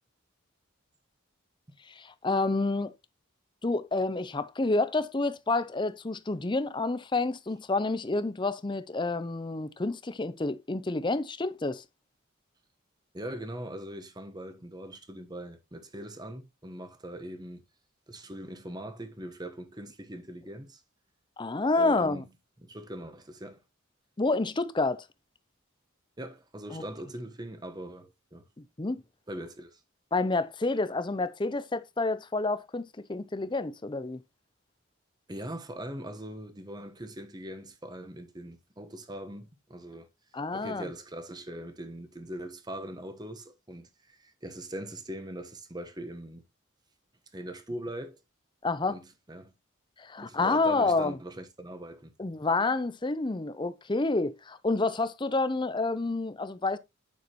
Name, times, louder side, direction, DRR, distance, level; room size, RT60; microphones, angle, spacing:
voice 1, 2.0-2.9 3.6-11.8 21.4-22.2 24.2-25.0 26.7-26.8 28.8-29.0 30.1-34.2 40.3-40.9 48.6-49.0 50.0-51.2 52.2-56.8, left 3 dB, 25° left, 0.6 m, -29 dB
voice 2, 13.1-17.6 18.1-20.8 21.8-22.3 22.6-23.6 26.2-28.5 29.3-29.8 35.3-40.1 40.5-46.4 47.3-48.2 48.9-49.5 50.2-52.1, right 1 dB, 20° right, 1.2 m, -41 dB
9.5 x 6.4 x 3.0 m
head